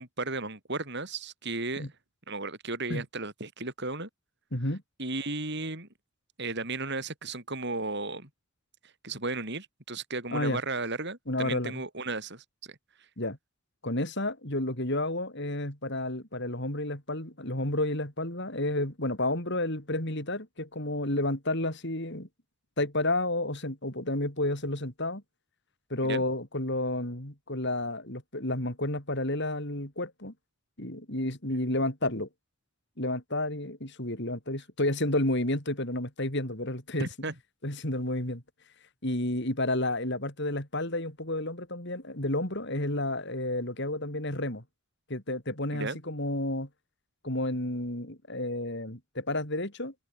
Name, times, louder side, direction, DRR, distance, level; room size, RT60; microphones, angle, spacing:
voice 1, 0.0-1.9 2.3-4.1 5.0-5.9 6.4-8.3 9.0-12.8 26.0-26.2 37.0-37.3 45.7-46.0, right 3 dB, 50° right, 8.0 m, -34 dB
voice 2, 4.5-4.8 10.3-10.6 11.3-11.8 13.2-13.4 13.8-22.3 22.8-25.2 25.9-30.3 30.8-32.3 33.0-37.1 37.6-38.4 39.0-44.6 45.1-46.7 47.2-49.9, left 1 dB, 50° left, 4.8 m, -31 dB
open air
head